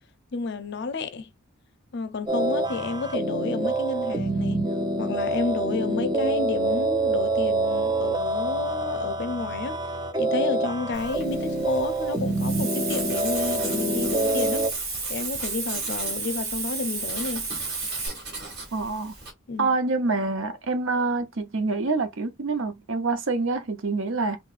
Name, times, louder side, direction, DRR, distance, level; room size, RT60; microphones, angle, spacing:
voice 1, 0.3-1.3 1.9-4.6 5.0-9.8 10.2-14.7 15.1-17.5 19.5-19.8, left 4 dB, 55° left, 0.6 m, -31 dB
sound 1, 2.3-14.7, right 2 dB, 20° right, 0.4 m, -26 dB
Writing, 10.9-19.3, right 3 dB, 50° right, 2.0 m, -40 dB
Hiss, 12.3-18.1, right 4 dB, 85° right, 2.3 m, -32 dB
voice 2, 18.7-19.1 19.6-24.4, right 3 dB, 70° right, 0.8 m, -26 dB
3.9 x 3.3 x 2.5 m
head